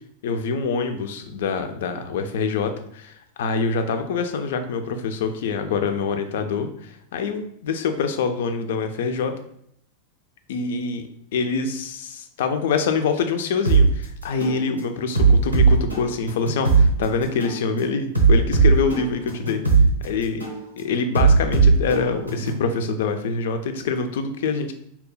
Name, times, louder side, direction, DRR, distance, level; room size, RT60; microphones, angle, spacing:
voice 1, 0.2-9.3 10.5-11.0 11.3-19.6 20.0-20.4 20.8-24.7, left 5 dB, 55° left, 7 dB, 0.3 m, -25 dB
sound 1, 13.6-13.9 14.4-14.6 15.1-16.9 17.4-17.6 18.1-19.9 20.4-20.6 21.1-22.6, right 5 dB, 85° right, 0.6 m, -17 dB
2.8 x 2.1 x 3.9 m, 0.70 s
figure-of-eight pair, 90°, 0 cm